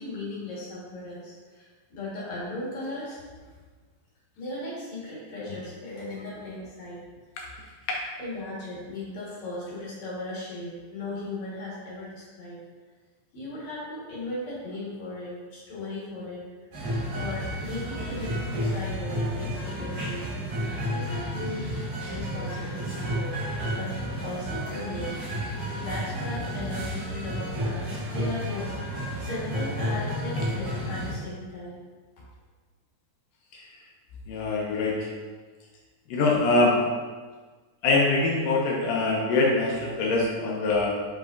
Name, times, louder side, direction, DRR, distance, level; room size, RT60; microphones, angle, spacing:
voice 1, 0.0-3.6 4.4-7.0 8.2-12.6 13.3-16.7 17.1-20.2 20.9-21.7 22.1-23.1 23.4-25.2 25.8-31.8, left 2 dB, 55° left, -8 dB, 2.8 m, -37 dB
sound 1, 16.7-31.1, equal, 65° right, 3.2 m, -31 dB
voice 2, 34.3-35.1 36.1-36.8 37.8-40.9, left 3 dB, 75° left, -2 dB, 2.2 m, -23 dB
7.7 x 5.2 x 2.7 m, 1.4 s
omnidirectional pair, 4.1 m